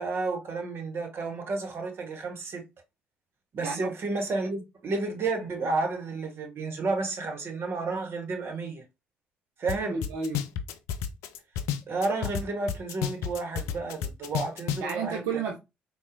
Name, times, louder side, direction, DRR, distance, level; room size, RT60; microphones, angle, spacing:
voice 1, 0.0-2.6 3.5-8.8 9.6-10.1 11.9-15.2, right 3 dB, 55° right, 1.2 m, -31 dB
sound 1, 9.7-9.8 10.0-12.4 12.7-14.9, left 9 dB, 75° left, 0.4 m, -30 dB
voice 2, 9.9-10.4 14.8-15.6, right 5 dB, 75° right, 0.6 m, -31 dB
4.1 x 2.3 x 2.6 m
hypercardioid pair, 50°, 5 cm